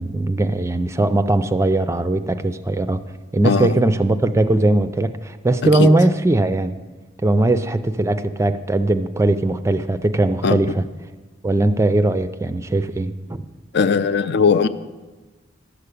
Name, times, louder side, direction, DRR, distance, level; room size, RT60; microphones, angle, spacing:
voice 1, 0.0-3.0 3.3-6.8 7.2-10.9 11.4-13.4, right 2 dB, 15° right, 11 dB, 0.4 m, -19 dB
voice 2, 3.4-3.7 5.8-5.9 10.4-10.6 13.7-14.7, left 5 dB, 60° left, 12 dB, 0.5 m, -18 dB
12.0 x 6.7 x 8.4 m, 1.2 s
head